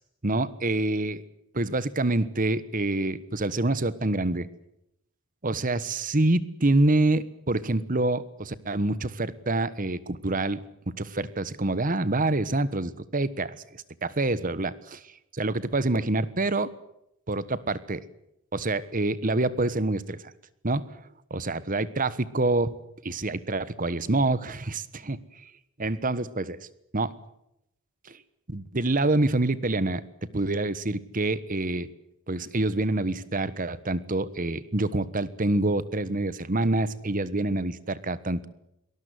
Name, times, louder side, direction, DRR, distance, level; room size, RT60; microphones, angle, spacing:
voice 1, 0.2-1.2 1.5-4.5 5.4-10.6 11.0-15.0 15.3-16.7 17.3-18.0 18.5-20.3 20.6-21.0 21.3-22.7 23.0-25.5 25.8-26.6 26.9-27.1 28.0-28.2 28.5-30.0 30.3-31.9 32.3-38.5, right 2 dB, 40° right, 16 dB, 1.3 m, -26 dB
23.5 x 19.5 x 8.1 m, 0.81 s
head